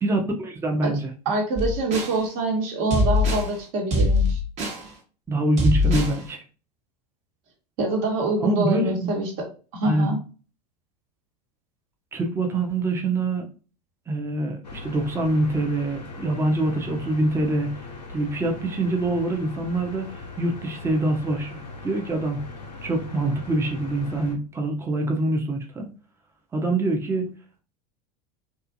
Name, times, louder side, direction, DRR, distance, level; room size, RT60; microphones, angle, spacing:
voice 1, 0.0-1.1 5.3-6.4 8.4-9.1 9.8-10.1 12.1-13.4 14.1-17.7 18.1-22.4 22.8-25.9 26.5-27.3, right 2 dB, 10° right, 2 dB, 0.5 m, -25 dB
voice 2, 1.2-4.4 7.8-9.3 9.7-10.2, right 2 dB, 55° right, 1 dB, 1.1 m, -25 dB
sound 1, 1.6-2.2 2.9-3.5 3.9-4.8 5.6-6.2, left 2 dB, 35° right, 0.9 m, -22 dB
sound 2, 14.6-24.4, left 3 dB, 90° left, 0.6 m, -39 dB
2.5 x 2.4 x 2.6 m, 0.36 s
hypercardioid pair, 85°, 21 cm